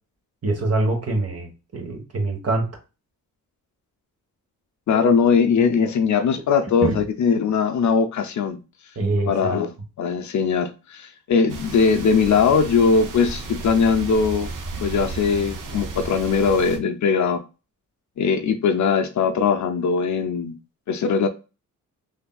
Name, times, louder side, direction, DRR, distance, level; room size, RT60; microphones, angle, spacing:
voice 1, 0.4-2.7 6.8-6.9 9.0-9.6, right 2 dB, 40° right, 1.2 m, -24 dB
voice 2, 4.9-8.6 9.3-9.7 10.0-14.5 14.8-17.4 18.2-20.5 20.9-21.3, left 5 dB, 55° left, 0.5 m, -20 dB
sound 1, 11.5-16.8, right 3 dB, 60° right, 0.8 m, -33 dB
3.3 x 2.6 x 2.3 m
cardioid pair, 70°, 36 cm